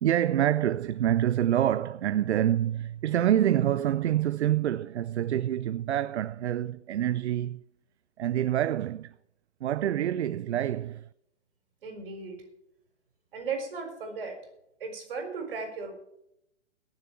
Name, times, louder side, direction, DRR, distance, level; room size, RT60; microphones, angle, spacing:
voice 1, 0.0-7.6 8.2-9.1 9.6-11.1, right 11 dB, 70° right, 0.5 m, -26 dB
voice 2, 11.8-12.4 13.3-14.4 14.8-15.9, right 4 dB, 50° right, 4.2 m, -36 dB
21.5 x 7.3 x 4.5 m
hypercardioid pair, 145°, 35 cm